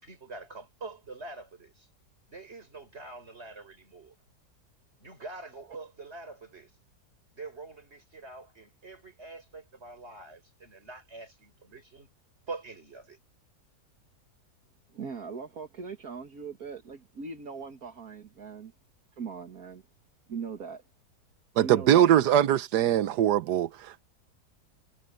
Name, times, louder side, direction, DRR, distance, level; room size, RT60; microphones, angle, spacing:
voice 1, 0.0-1.9 2.3-4.2 5.0-6.7 7.3-12.1 12.5-13.2, right 3 dB, 40° right, 5.0 m, -45 dB
voice 2, 14.9-18.7 19.2-19.8 20.3-20.8 21.6-22.3, right 5 dB, 65° right, 2.3 m, -40 dB
voice 3, 21.6-24.0, right 11 dB, 90° right, 1.4 m, -22 dB
omnidirectional pair, 1.7 m